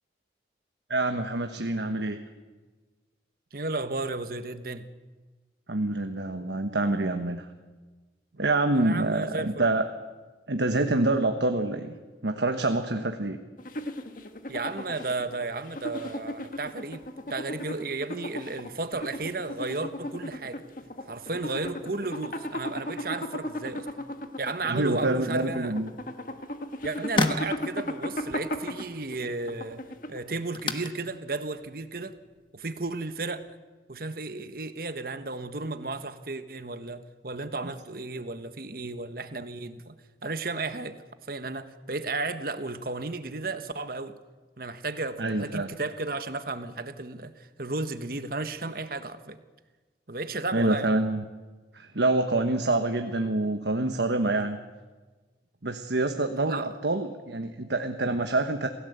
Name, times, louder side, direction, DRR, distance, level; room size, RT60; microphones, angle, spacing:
voice 1, 0.9-2.2 5.7-7.5 8.4-9.8 10.5-12.0 12.2-13.4 24.7-25.9 45.2-45.7 50.5-51.2 51.7-54.6 55.6-58.7, right 2 dB, 75° right, 1.3 m, -26 dB
voice 2, 3.5-4.9 8.7-9.7 14.5-17.0 17.3-20.6 21.1-23.9 24.4-25.7 26.8-29.8 30.1-32.2 32.5-33.5 33.9-39.9 40.2-41.0 41.3-44.1 44.6-49.4 50.1-51.0 56.5-56.7, right 3 dB, 55° right, 1.3 m, -34 dB
sound 1, 13.6-30.4, left 1 dB, 45° left, 1.7 m, -36 dB
sound 2, 26.2-33.5, left 3 dB, 30° left, 1.3 m, -36 dB
27.5 x 16.5 x 8.1 m
head